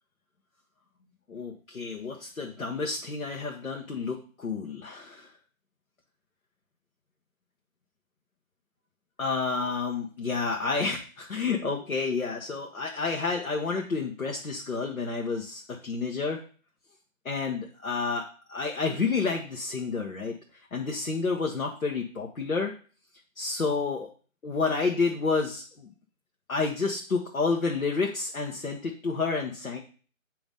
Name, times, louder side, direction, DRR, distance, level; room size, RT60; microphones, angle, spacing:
voice 1, 1.3-5.3 9.2-16.4 17.2-20.4 20.7-22.7 23.4-24.1 24.4-25.9 26.5-29.8, left 4 dB, 75° left, 0 dB, 1.3 m, -30 dB
8.8 x 3.0 x 5.2 m, 0.41 s
figure-of-eight pair, 180°, 41 cm